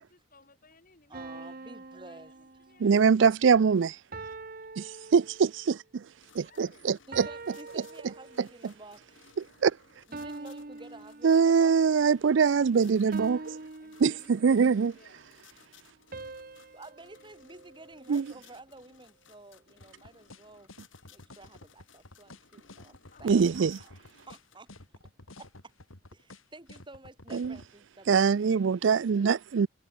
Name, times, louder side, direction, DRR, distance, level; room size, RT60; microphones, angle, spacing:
voice 1, 0.0-3.1 6.4-6.9 7.4-7.8 13.8-15.3 22.9-23.6 24.2-24.3 29.5-29.7, left 3 dB, 45° left, 6.5 m, -61 dB
voice 2, 1.1-2.3 7.1-9.1 10.1-11.8 16.7-20.7 21.1-23.9 24.3-24.8 25.4-25.7 26.1-28.6, right 2 dB, 25° right, 1.8 m, -51 dB
sound 1, 1.1-3.1 4.1-5.8 7.1-8.7 10.1-11.8 13.1-14.7 16.1-18.5, right 3 dB, 45° right, 1.1 m, -44 dB
voice 3, 2.8-4.0 4.8-4.9 5.1-6.0 6.4-7.3 9.6-9.7 11.2-13.6 14.0-14.9 18.1-18.3 23.2-23.8 27.3-27.6 28.1-29.7, right 6 dB, 65° right, 0.4 m, -23 dB
sound 2, 6.2-24.6, left 6 dB, 70° left, 3.4 m, -61 dB
sound 3, 19.8-27.7, left 2 dB, 90° left, 3.7 m, -50 dB
head